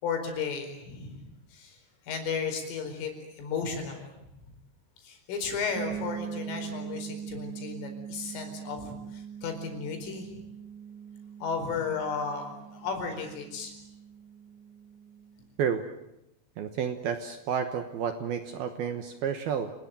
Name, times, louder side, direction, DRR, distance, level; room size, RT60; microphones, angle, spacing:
voice 1, 0.0-1.3 1.5-1.8 2.1-3.1 3.4-4.1 5.0-10.3 11.4-13.7, left 5 dB, 75° left, 5 dB, 7.2 m, -34 dB
sound 1, 5.8-15.4, right 8 dB, 45° right, 3.1 m, -42 dB
voice 2, 16.6-19.7, right 7 dB, 70° right, 8 dB, 2.5 m, -31 dB
28.5 x 20.0 x 9.1 m, 0.85 s
omnidirectional pair, 5.8 m